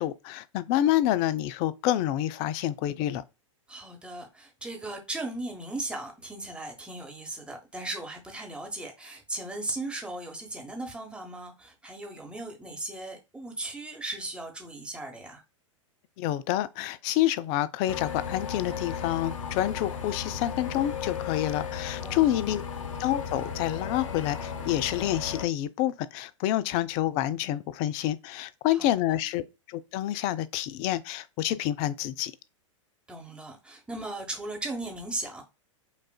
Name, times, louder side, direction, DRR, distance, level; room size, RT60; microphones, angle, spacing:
voice 1, 0.0-3.2 16.2-22.6 23.0-32.3, left 13 dB, 40° left, 0.4 m, -28 dB
voice 2, 3.7-15.4 22.0-22.5 28.7-29.2 33.1-35.4, right 2 dB, 5° right, 1.1 m, -37 dB
sound 1, 17.9-25.5, left 6 dB, 70° left, 0.7 m, -35 dB
5.3 x 2.4 x 2.2 m
hypercardioid pair, 100°, 17 cm